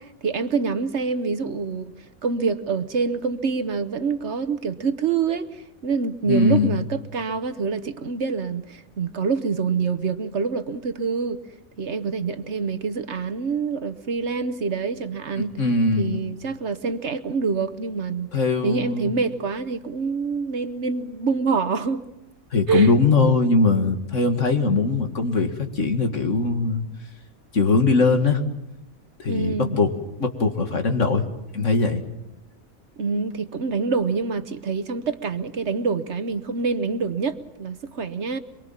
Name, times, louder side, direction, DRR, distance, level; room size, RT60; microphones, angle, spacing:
voice 1, 0.0-1.9 2.2-11.4 11.8-15.6 16.0-18.3 18.6-22.0 22.7-22.9 29.3-29.7 33.0-38.4, right 5 dB, 55° right, 1.3 m, -26 dB
voice 2, 6.2-6.9 15.4-16.2 18.3-19.1 22.5-26.8 27.5-28.4 29.2-29.9 30.2-31.2 31.5-32.0, left 3 dB, 65° left, 2.3 m, -21 dB
24.5 x 23.5 x 7.4 m
omnidirectional pair, 1.4 m